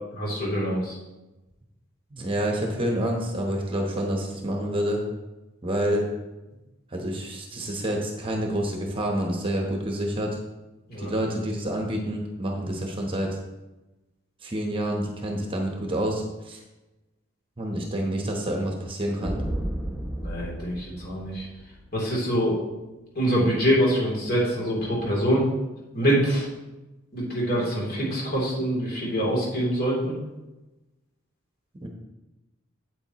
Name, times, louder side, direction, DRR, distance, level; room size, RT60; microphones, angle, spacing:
voice 1, 0.1-1.0 10.9-11.1 20.2-21.5 21.9-22.6 23.1-25.5 25.9-26.5 27.1-30.1, equal, 50° left, -4 dB, 3.1 m, -25 dB
voice 2, 2.1-5.0 5.6-6.0 6.9-10.4 11.0-13.4 14.4-16.6 17.6-19.4 31.8-31.9, right 1 dB, 25° right, 1 dB, 1.0 m, -28 dB
sound 1, 19.2-21.8, right 1 dB, 5° right, 0.7 m, -32 dB
8.8 x 8.1 x 3.0 m, 1.1 s
head